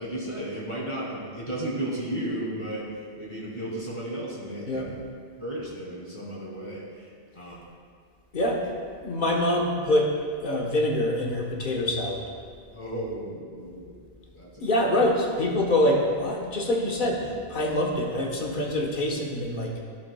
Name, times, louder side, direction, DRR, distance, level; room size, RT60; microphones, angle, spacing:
voice 1, 0.0-4.9 5.4-7.1 7.3-7.7 12.7-14.0 14.3-14.6, right 1 dB, 30° left, -6 dB, 2.3 m, -34 dB
voice 2, 9.0-10.1 10.4-12.3 14.6-19.8, left 1 dB, 50° left, -1 dB, 1.3 m, -25 dB
14.0 x 7.1 x 2.3 m, 2.1 s
omnidirectional pair, 1.1 m